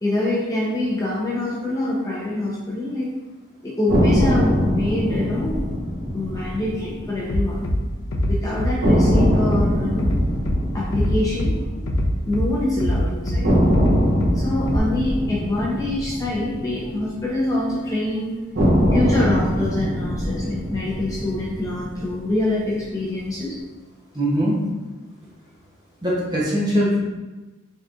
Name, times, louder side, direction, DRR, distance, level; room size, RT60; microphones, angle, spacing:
voice 1, 0.0-3.1 3.6-5.6 6.1-7.7 8.3-10.1 10.7-11.9 12.2-13.6 14.3-18.4 18.9-23.6, left 1 dB, 15° left, -5 dB, 0.6 m, -25 dB
sound 1, 3.9-8.0 8.2-8.3 8.8-12.9 13.4-17.8 18.5-22.9, equal, 55° right, 0.9 m, -23 dB
Bass drum, 7.3-7.8 8.1-8.7 9.1-9.7 10.0-10.6 10.9-11.5 11.9-12.5 12.8-13.4 13.7-14.4 14.7-14.8, left 1 dB, 80° left, 0.5 m, -22 dB
voice 2, 24.1-24.6 26.0-27.0, equal, 20° right, -5 dB, 0.8 m, -21 dB
3.9 x 3.6 x 2.4 m, 1.2 s
head